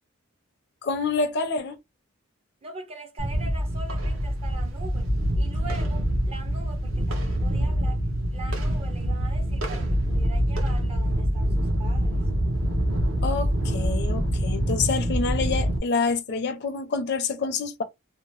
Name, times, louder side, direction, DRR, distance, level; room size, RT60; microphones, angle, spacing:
voice 1, 0.8-1.8 13.2-17.8, left 4 dB, 55° left, 0.5 m, -27 dB
voice 2, 2.6-8.0 8.3-12.3, right 3 dB, 30° right, 0.5 m, -42 dB
sound 1, 3.2-15.8, equal, 70° right, 0.8 m, -25 dB
2.8 x 2.0 x 3.0 m
head